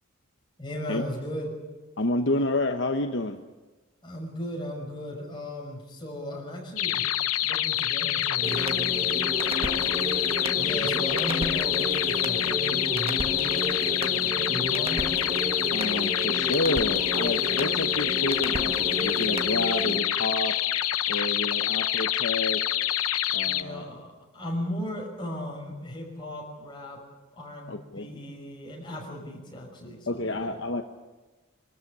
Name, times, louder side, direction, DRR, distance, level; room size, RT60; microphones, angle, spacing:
voice 1, 0.6-1.5 4.0-7.0 7.4-15.0 23.4-24.1 24.3-27.0 27.4-30.6, left 1 dB, 20° left, -1 dB, 5.7 m, -37 dB
voice 2, 2.0-3.4 10.7-10.9 15.7-20.6 21.1-22.6 23.3-23.9 27.7-28.1 30.1-30.8, left 2 dB, 55° left, 5 dB, 1.0 m, -29 dB
sound 1, 6.8-23.6, left 12 dB, 85° left, 0.8 m, -27 dB
sound 2, 8.4-20.0, right 1 dB, 25° right, 1.5 m, -32 dB
24.0 x 13.5 x 9.8 m, 1.3 s
head